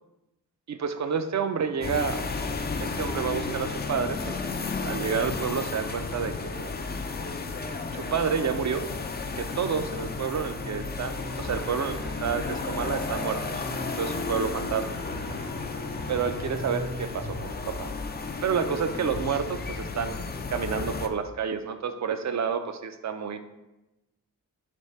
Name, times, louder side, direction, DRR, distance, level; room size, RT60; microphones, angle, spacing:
voice 1, 0.7-2.3 2.8-4.4 4.8-6.7 7.9-8.8 9.4-13.7 14.0-14.9 16.1-17.9 18.4-20.2 20.5-23.4, right 6 dB, 45° right, 9 dB, 0.5 m, -29 dB
sound 1, 1.8-21.1, left 4 dB, 25° left, 0.4 m, -33 dB
sound 2, 9.1-17.6, equal, 75° right, 1.4 m, -42 dB
3.5 x 3.2 x 4.1 m, 0.97 s
cardioid pair, 45°, 40 cm